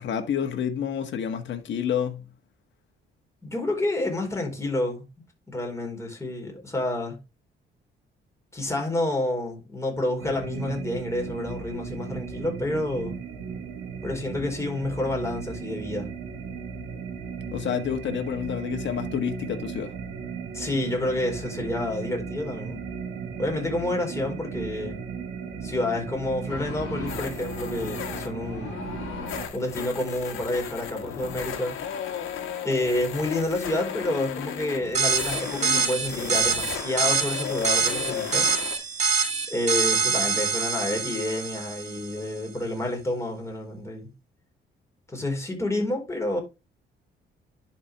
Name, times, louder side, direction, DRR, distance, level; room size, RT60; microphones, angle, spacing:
voice 1, 0.0-2.3 17.5-20.0, left 8 dB, 65° left, 1.6 m, -29 dB
voice 2, 3.4-5.0 5.5-7.2 8.5-13.1 14.0-16.1 20.5-22.8 23.4-25.0 25.6-28.8 29.5-31.8 32.6-38.5 39.5-44.1 45.1-46.4, left 1 dB, 15° left, 4.5 m, -29 dB
sound 1, 10.2-29.5, right 6 dB, 85° right, 2.0 m, -36 dB
sound 2, 26.5-38.8, left 8 dB, 80° left, 1.7 m, -35 dB
sound 3, 34.9-42.1, right 5 dB, 35° right, 2.1 m, -25 dB
11.0 x 4.6 x 3.4 m
cardioid pair, 90°, 20 cm